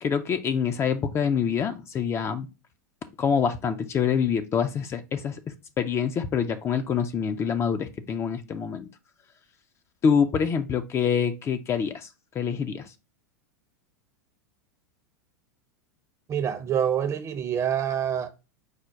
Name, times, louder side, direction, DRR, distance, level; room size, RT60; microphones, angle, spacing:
voice 1, 0.0-2.5 3.2-8.9 10.0-12.1 12.3-12.9, left 7 dB, 25° left, 0.4 m, -26 dB
voice 2, 16.3-18.3, right 9 dB, 30° right, 0.6 m, -26 dB
4.9 x 2.2 x 4.2 m
hypercardioid pair, 100°, 10 cm